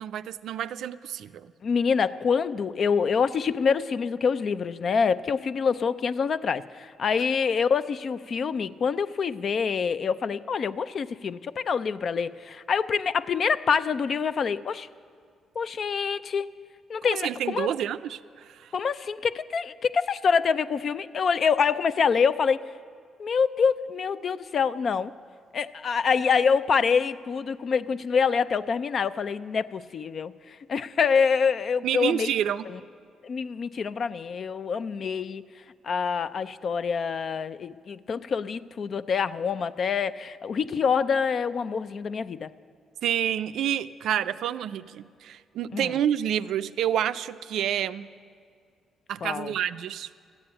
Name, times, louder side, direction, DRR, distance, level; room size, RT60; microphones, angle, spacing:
voice 1, 0.0-1.5 17.0-18.7 31.8-32.7 43.0-48.1 49.1-50.1, right 10 dB, 75° right, 13 dB, 0.4 m, -29 dB
voice 2, 1.6-14.9 15.6-16.5 16.9-17.7 18.7-22.6 23.2-25.1 25.5-32.3 33.2-35.4 35.8-42.5 45.7-45.9 49.2-49.5, left 6 dB, 50° left, 14 dB, 0.4 m, -26 dB
13.5 x 8.6 x 8.7 m, 2.1 s
cardioid pair, 90°, 0 cm